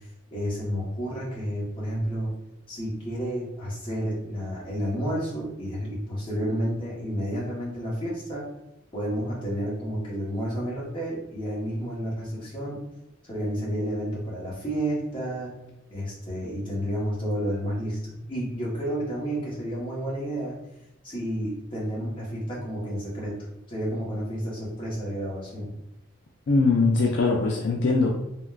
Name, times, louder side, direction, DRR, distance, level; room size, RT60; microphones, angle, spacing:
voice 1, 0.3-2.3 2.7-8.5 8.9-12.8 13.2-15.5 15.9-20.6 21.0-23.3 23.7-25.7, equal, 25° left, -6 dB, 0.9 m, -30 dB
voice 2, 26.5-28.1, left 3 dB, 60° left, 0 dB, 0.3 m, -21 dB
3.7 x 2.1 x 2.3 m, 0.88 s
head